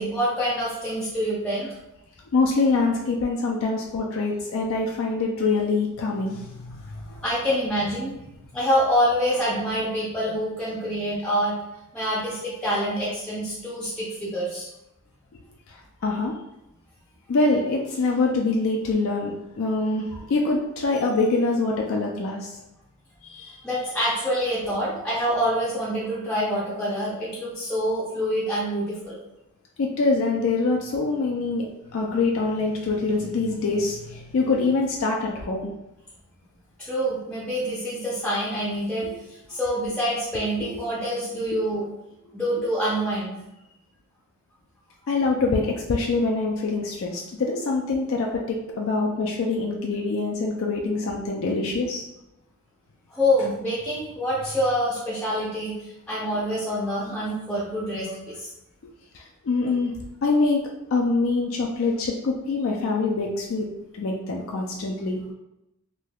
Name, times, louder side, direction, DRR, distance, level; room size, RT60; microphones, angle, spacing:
voice 1, 0.0-1.7 7.2-8.1 8.5-11.6 11.9-14.7 23.6-29.1 36.8-39.1 39.5-41.9 42.3-43.4 53.1-55.8 56.1-58.5, equal, 5° left, -8 dB, 0.6 m, -26 dB
voice 2, 2.3-7.2 15.7-15.8 16.0-16.3 17.3-22.6 23.2-23.6 29.8-31.7 31.9-35.7 39.0-39.1 40.6-40.7 45.1-52.0 59.1-59.9 60.2-65.2, left 3 dB, 65° left, 0 dB, 0.4 m, -25 dB
3.3 x 2.8 x 2.3 m, 0.87 s
head